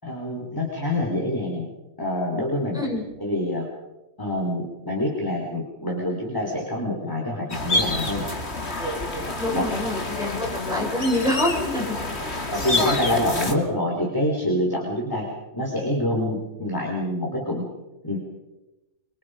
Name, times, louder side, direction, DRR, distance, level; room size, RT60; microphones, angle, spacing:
voice 1, 0.0-1.7 2.0-2.8 3.2-3.7 4.2-8.3 9.5-9.6 12.5-15.3 15.5-17.7 18.0-18.2, left 1 dB, 15° left, -2 dB, 4.5 m, -26 dB
sound 1, 7.5-13.5, left 2 dB, 45° left, 2.9 m, -27 dB
voice 2, 9.4-12.0 12.2-12.4, left 1 dB, ahead, -2 dB, 7.4 m, -26 dB
26.0 x 25.5 x 5.2 m, 1.0 s
omnidirectional pair, 1.5 m